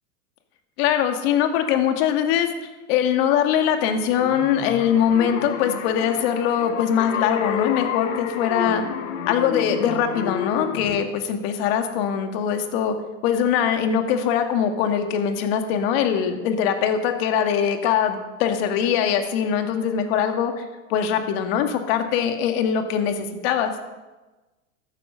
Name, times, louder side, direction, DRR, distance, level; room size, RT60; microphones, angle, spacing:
voice 1, 0.8-2.5 2.9-8.8 9.3-12.9 13.2-20.6 20.9-23.7, left 8 dB, 50° left, 6 dB, 2.0 m, -22 dB
sound 1, 3.9-11.0, left 9 dB, 75° left, 1.7 m, -30 dB
14.0 x 13.0 x 5.6 m, 1.2 s
supercardioid pair, 150°, 39 cm